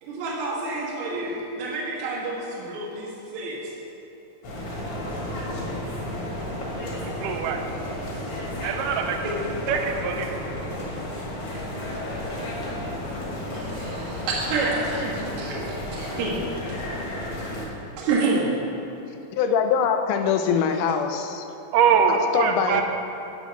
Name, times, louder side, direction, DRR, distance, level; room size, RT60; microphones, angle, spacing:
voice 1, 0.0-3.7 9.2-9.3 13.5-16.4 18.0-18.5 20.9-21.0, right 3 dB, 65° right, -5 dB, 2.7 m, -28 dB
sound 1, 4.4-17.7, left 1 dB, 50° left, 2.4 m, -32 dB
voice 2, 7.2-7.6 8.6-9.2 9.7-10.4 21.7-22.8, right 7 dB, 85° right, 4 dB, 2.3 m, -22 dB
voice 3, 19.3-21.5 22.1-22.8, left 7 dB, 80° left, 7 dB, 2.1 m, -23 dB
8.9 x 7.0 x 5.8 m, 2.9 s
omnidirectional pair, 3.7 m